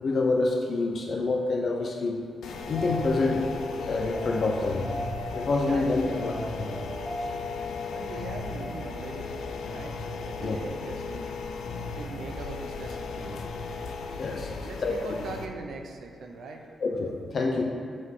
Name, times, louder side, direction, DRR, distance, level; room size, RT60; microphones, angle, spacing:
voice 1, 0.0-2.2 2.7-3.4 3.8-4.9 5.3-6.7 7.2-7.3 10.4-10.6 14.2-14.9 16.8-17.6, left 3 dB, 50° left, 1 dB, 0.6 m, -27 dB
sound 1, 2.4-15.5, left 4 dB, 90° left, 0.5 m, -36 dB
sound 2, 2.8-11.2 13.8-13.9, left 2 dB, 25° left, 1.6 m, -39 dB
voice 2, 5.7-6.3 7.9-10.0 10.2-11.4 12.0-13.4 14.6-16.6, right 3 dB, 75° right, 3 dB, 0.7 m, -41 dB
7.8 x 5.1 x 3.7 m, 2.4 s
wide cardioid pair, 130°, 0 cm